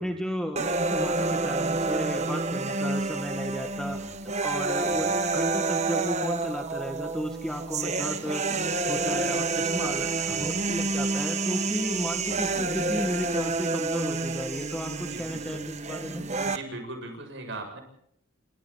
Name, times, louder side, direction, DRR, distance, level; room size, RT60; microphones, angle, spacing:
voice 1, 0.0-4.0 4.4-8.4 8.9-16.2, equal, 5° left, 4 dB, 2.0 m, -34 dB
sound 1, 0.6-16.6, right 3 dB, 35° right, 1.4 m, -28 dB
voice 2, 10.3-10.6 12.3-12.5 15.1-15.6 16.5-17.8, right 2 dB, 60° right, 4 dB, 7.5 m, -40 dB
29.0 x 27.5 x 4.2 m, 0.70 s
head